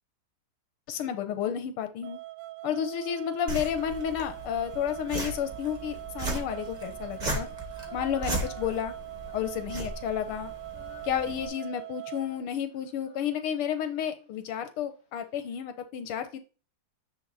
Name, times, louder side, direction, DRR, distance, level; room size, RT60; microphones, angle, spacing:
voice 1, 0.9-2.2 2.6-7.5 7.9-8.9 9.3-10.5 11.0-16.4, left 9 dB, 85° left, 9 dB, 1.9 m, -31 dB
sound 1, 2.0-12.3, right 18 dB, 85° right, 1.5 m, -42 dB
sound 2, 3.5-11.5, right 2 dB, 25° right, 1.3 m, -37 dB
Female singing, 6.1-10.0 10.3-14.6, left 2 dB, 45° left, 2.0 m, -52 dB
9.5 x 3.6 x 4.0 m, 0.34 s
omnidirectional pair, 2.3 m